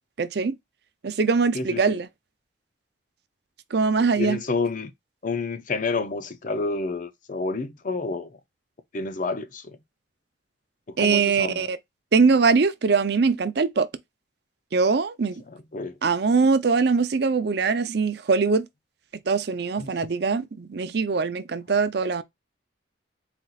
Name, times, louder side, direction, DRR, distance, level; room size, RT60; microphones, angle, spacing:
voice 1, 0.2-0.6 1.0-2.1 3.7-4.4 11.0-11.8 12.1-13.9 14.7-15.4 16.0-18.7 19.3-22.2, right 4 dB, 55° right, 0.5 m, -22 dB
voice 2, 1.5-2.0 4.2-4.9 5.2-8.3 8.9-9.8 11.0-11.7 15.7-15.9 19.8-19.9, left 3 dB, 45° left, 0.5 m, -29 dB
4.3 x 2.4 x 3.9 m
head